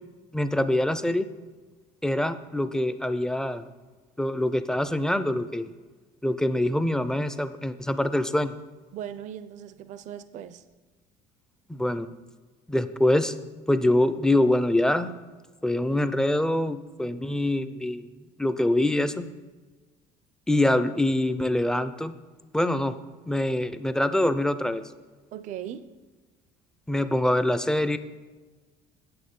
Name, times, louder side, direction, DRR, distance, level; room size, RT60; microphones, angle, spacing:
voice 1, 0.3-1.3 2.0-3.6 4.2-5.7 6.2-8.6 11.7-12.1 12.7-13.3 13.7-15.1 15.6-18.1 18.4-19.3 20.5-22.2 22.5-22.9 23.3-24.8 26.9-28.0, left 1 dB, 5° left, 12 dB, 0.4 m, -24 dB
voice 2, 8.9-10.6 25.3-25.9, right 10 dB, 50° right, 13 dB, 0.5 m, -38 dB
8.7 x 7.2 x 5.3 m, 1.3 s
cardioid pair, 130°, 16 cm